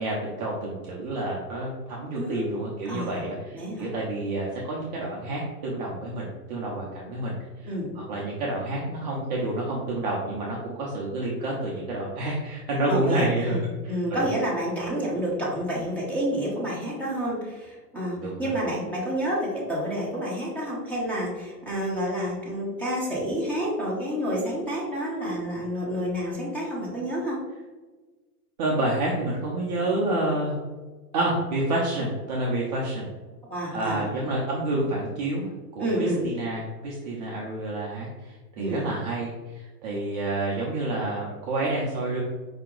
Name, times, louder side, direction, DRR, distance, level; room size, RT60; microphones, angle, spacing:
voice 1, 0.0-7.3 7.6-14.3 18.2-18.5 28.6-30.6 31.1-33.1 33.7-42.2, right 2 dB, 25° right, -4 dB, 0.5 m, -29 dB
voice 2, 2.9-3.3 3.5-3.9 7.6-7.9 12.8-27.4 33.5-34.1 35.8-36.2 38.6-38.9, equal, 5° left, -6 dB, 0.7 m, -29 dB
4.8 x 2.8 x 3.7 m, 1.3 s
hypercardioid pair, 140°, 50 cm